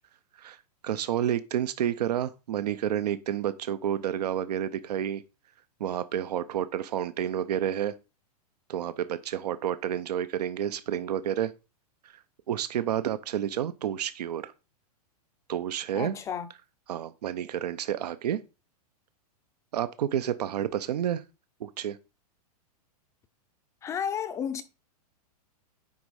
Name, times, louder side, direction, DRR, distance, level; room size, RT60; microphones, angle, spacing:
voice 1, 0.4-5.2 5.8-7.9 8.7-11.5 12.0-12.1 12.5-14.5 15.5-16.2 16.9-18.4 19.7-21.2 21.6-22.0, right 10 dB, 90° right, 0.6 m, -30 dB
voice 2, 15.9-16.5 23.8-24.6, left 8 dB, 15° left, 0.4 m, -32 dB
9.4 x 3.6 x 4.7 m
supercardioid pair, 150°, 20 cm